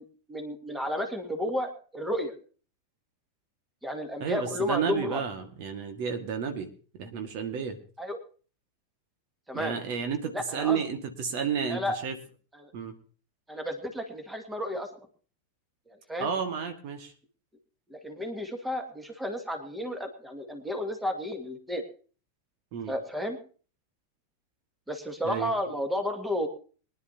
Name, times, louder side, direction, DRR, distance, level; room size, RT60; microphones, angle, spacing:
voice 1, 0.0-2.3 3.8-5.2 8.0-8.2 9.5-9.8 10.3-10.8 11.7-12.0 12.5-12.7 13.5-14.9 15.9-16.3 17.9-21.8 22.9-23.4 24.9-26.5, left 1 dB, 5° right, 6 dB, 2.2 m, -32 dB
voice 2, 4.2-6.7 7.0-7.8 9.5-12.2 12.7-12.9 16.2-17.1 22.7-22.9 25.2-25.5, right 7 dB, 45° right, 6 dB, 1.8 m, -31 dB
23.5 x 10.5 x 2.8 m, 0.39 s
figure-of-eight pair, 90°, 0 cm